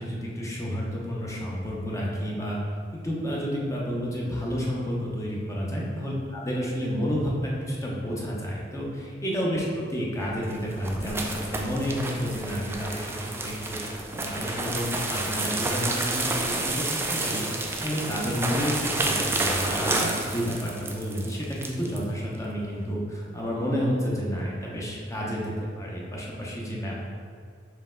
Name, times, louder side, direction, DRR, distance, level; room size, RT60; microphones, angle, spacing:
voice 1, 0.0-2.6 2.9-16.8 17.1-17.4 17.8-27.0, equal, 15° left, -4 dB, 0.7 m, -30 dB
sound 1, 10.3-22.0, right 2 dB, 15° right, 0.3 m, -30 dB
4.5 x 3.0 x 3.7 m, 2.2 s
head